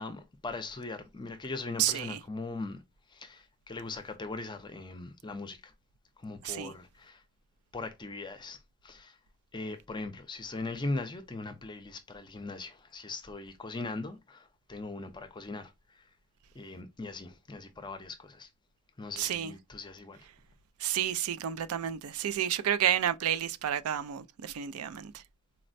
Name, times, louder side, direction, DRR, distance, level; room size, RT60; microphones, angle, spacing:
voice 1, 0.0-2.8 3.1-5.7 6.2-7.2 7.7-8.6 8.8-9.2 9.5-15.7 16.5-18.5 19.0-20.2, left 3 dB, 20° left, 0.5 m, -40 dB
voice 2, 1.8-2.2 6.4-6.7 19.2-19.5 20.8-25.2, right 10 dB, 80° right, 0.4 m, -30 dB
4.1 x 2.1 x 2.5 m
head